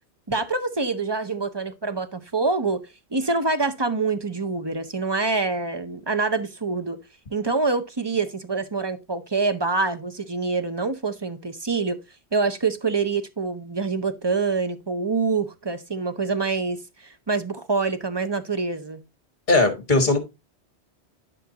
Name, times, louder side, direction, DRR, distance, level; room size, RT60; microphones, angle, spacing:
voice 1, 0.3-7.0 7.3-12.0 12.3-19.0, right 4 dB, 30° right, 0.6 m, -26 dB
voice 2, 19.5-20.2, left 2 dB, 45° left, 1.8 m, -19 dB
10.5 x 5.4 x 2.8 m
omnidirectional pair, 1.1 m